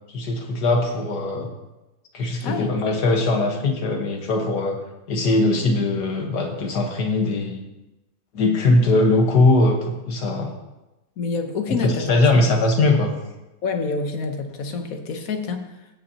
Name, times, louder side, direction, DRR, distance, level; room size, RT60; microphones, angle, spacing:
voice 1, 0.1-1.5 2.1-4.8 5.1-7.6 8.3-10.6 11.7-13.1, left 2 dB, 90° left, 2 dB, 1.9 m, -20 dB
voice 2, 2.4-2.7 11.2-12.1 13.6-15.7, left 4 dB, 60° left, 6 dB, 1.3 m, -27 dB
16.0 x 8.3 x 2.9 m, 1.0 s
omnidirectional pair, 1.7 m